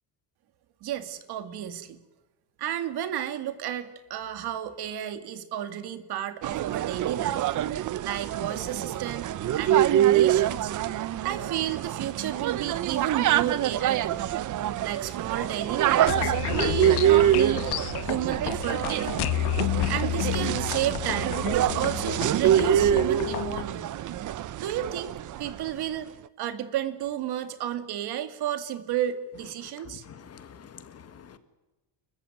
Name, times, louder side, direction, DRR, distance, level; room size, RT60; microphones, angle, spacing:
voice 1, 0.8-2.0 2.6-7.5 8.0-10.7 11.2-14.3 14.8-17.7 18.0-19.4 19.9-23.9 24.6-25.1 25.4-26.1 26.4-30.0, right 11 dB, 60° right, 2.4 m, -32 dB
sound 1, 6.4-25.7, right 12 dB, 45° right, 0.8 m, -25 dB
sound 2, 16.1-23.6, left 15 dB, 60° left, 1.4 m, -30 dB
voice 2, 29.8-31.4, left 7 dB, 35° left, 1.7 m, -47 dB
30.0 x 14.5 x 9.5 m
cardioid pair, 165°, 44 cm